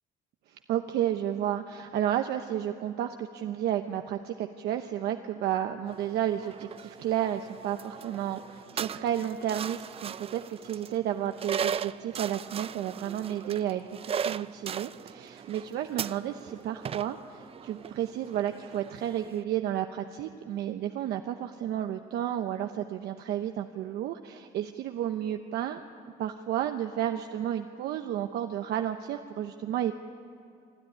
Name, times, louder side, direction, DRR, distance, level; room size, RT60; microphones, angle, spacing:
voice 1, 0.7-25.8 26.2-29.9, right 11 dB, 75° right, 6 dB, 0.9 m, -32 dB
sound 1, 5.9-19.4, right 8 dB, 35° right, 0.5 m, -38 dB
25.0 x 13.0 x 9.9 m, 2.5 s
cardioid pair, 110°, 17 cm